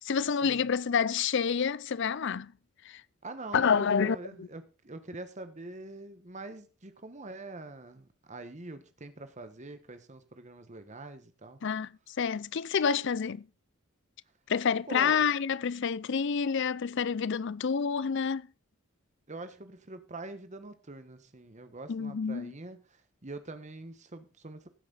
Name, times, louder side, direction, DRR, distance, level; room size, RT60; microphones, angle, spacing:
voice 1, 0.0-2.5 2.8-3.0 3.5-4.5 11.6-13.5 14.5-18.5 21.9-22.5, left 6 dB, 60° left, 0.5 m, -28 dB
voice 2, 3.2-11.6 14.9-15.2 19.3-24.7, right 2 dB, 35° right, 1.2 m, -44 dB
15.5 x 8.4 x 4.0 m
head